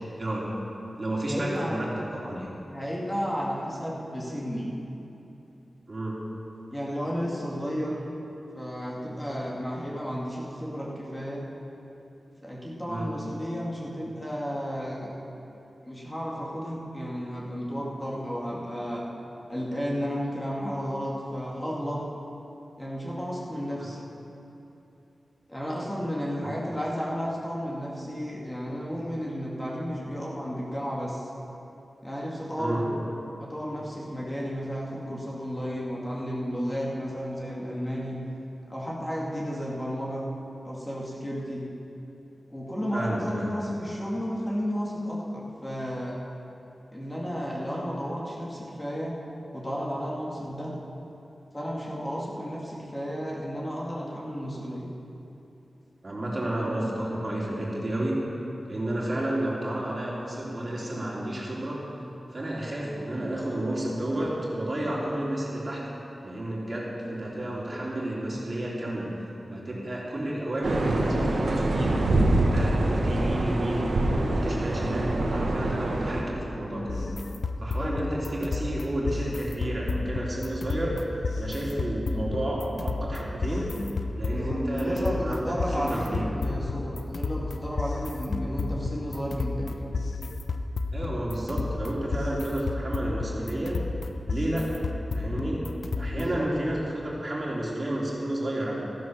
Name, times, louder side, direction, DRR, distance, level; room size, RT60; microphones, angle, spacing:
voice 1, 0.2-0.5 1.0-2.5 5.9-6.2 12.9-13.1 23.8-23.9 26.4-26.5 32.6-32.9 42.9-43.5 56.0-58.2 58.6-61.9 62.3-65.9 66.2-69.1 69.5-77.1 77.6-83.7 84.2-86.3 90.9-93.8 94.3-94.8 95.1-98.7, right 1 dB, 40° right, -4 dB, 2.9 m, -31 dB
voice 2, 1.3-1.8 2.7-4.7 6.7-8.1 8.5-11.5 12.4-15.2 15.8-19.0 19.5-22.0 22.8-24.0 25.5-31.3 32.0-33.0 33.4-38.2 38.7-40.3 40.6-41.7 42.5-46.2 46.9-49.2 49.5-50.8 51.5-54.9 77.8-78.2 84.3-89.9 96.1-96.5, equal, 15° left, -4 dB, 2.4 m, -33 dB
sound 1, 70.6-76.2, right 1 dB, 85° right, 1.5 m, -25 dB
sound 2, 76.9-96.5, left 3 dB, 75° left, 0.7 m, -32 dB
13.5 x 10.5 x 6.4 m, 2.9 s
wide cardioid pair, 70°, 0 cm